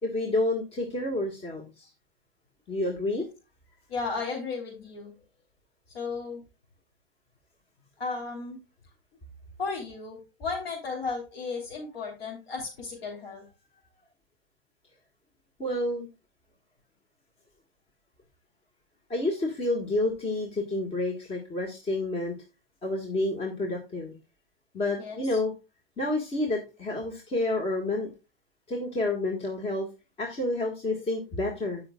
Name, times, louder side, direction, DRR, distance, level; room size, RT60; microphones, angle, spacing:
voice 1, 0.0-1.9 2.7-3.3 15.6-16.1 19.1-22.3 22.8-24.2 24.7-25.5 26.0-28.1 28.7-29.9 30.2-31.8, left 2 dB, 20° left, 1 dB, 1.7 m, -29 dB
voice 2, 3.9-5.1 5.9-6.4 8.0-8.6 9.6-13.4 25.0-25.4, left 4 dB, 80° left, -3 dB, 3.7 m, -34 dB
15.5 x 5.8 x 2.4 m, 0.28 s
hypercardioid pair, 130°, 30 cm